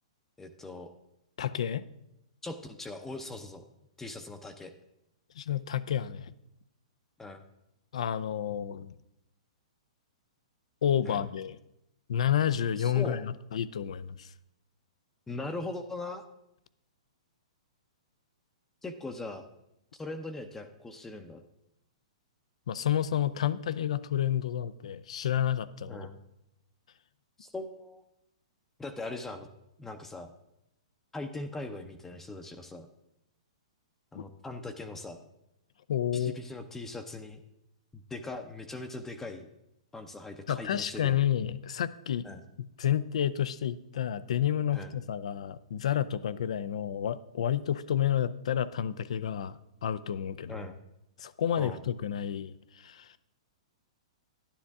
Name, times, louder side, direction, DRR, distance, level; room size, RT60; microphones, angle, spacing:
voice 1, 0.4-0.9 2.4-3.6 4.0-4.7 7.2-7.4 11.1-11.2 12.8-13.2 15.3-16.2 18.8-19.4 19.9-21.4 25.9-26.2 27.4-28.0 28.8-29.5 29.8-30.3 31.1-32.9 34.1-35.3 36.1-37.4 37.9-39.5 39.9-41.2 42.2-42.4 44.7-44.9 50.5-50.8 51.6-51.8, left 2 dB, 10° left, 6 dB, 0.7 m, -40 dB
voice 2, 1.4-1.8 5.4-6.3 7.9-8.9 10.8-11.6 12.1-14.3 22.7-26.1 34.2-34.3 35.9-36.4 40.5-42.3 42.6-50.6 51.2-53.2, left 10 dB, 70° left, 16 dB, 0.5 m, -30 dB
11.0 x 10.0 x 3.6 m, 0.85 s
hypercardioid pair, 130°, 3 cm